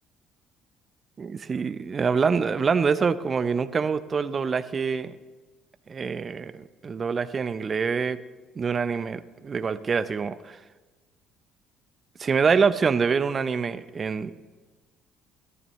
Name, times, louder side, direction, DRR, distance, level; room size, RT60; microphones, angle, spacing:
voice 1, 1.2-5.2 5.9-8.2 8.6-10.6 12.2-14.3, right 5 dB, 40° right, 14 dB, 0.7 m, -25 dB
22.0 x 14.0 x 3.2 m, 1.3 s
hypercardioid pair, 55°, 0 cm